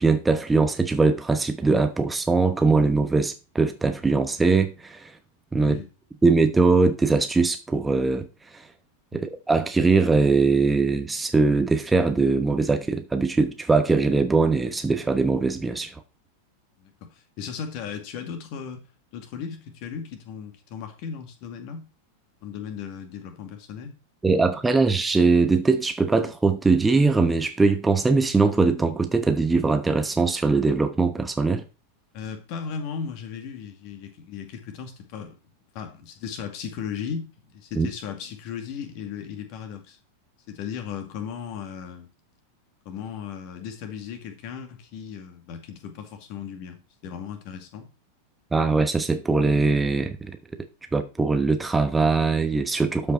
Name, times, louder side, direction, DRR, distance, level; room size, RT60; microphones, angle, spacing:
voice 1, 0.0-5.1 5.5-5.8 6.2-8.3 8.5-8.6 9.1-15.9 24.2-31.6 37.8-37.9 48.5-50.4 50.9-53.1, right 3 dB, 10° right, 1.0 m, -21 dB
voice 2, 5.6-5.9 16.8-18.8 19.1-21.9 22.4-23.9 32.1-35.4 35.7-40.0 40.5-42.1 42.9-46.8 47.0-47.9, left 7 dB, 45° left, 2.2 m, -36 dB
12.5 x 5.6 x 4.4 m
figure-of-eight pair, 90°, 0 cm